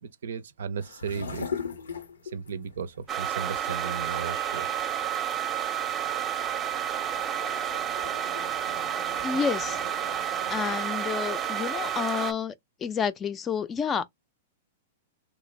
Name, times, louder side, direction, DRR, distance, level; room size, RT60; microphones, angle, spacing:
voice 1, 0.0-1.5 2.3-4.8, right 6 dB, 80° right, 0.5 m, -35 dB
sound 1, 0.8-10.8, left 6 dB, 85° left, 0.7 m, -42 dB
sound 2, 3.1-12.3, right 9 dB, 25° right, 0.6 m, -30 dB
voice 2, 9.2-9.8 10.5-12.5 12.8-14.1, left 6 dB, 25° left, 0.4 m, -29 dB
3.2 x 2.5 x 3.1 m
hypercardioid pair, 115°, 0 cm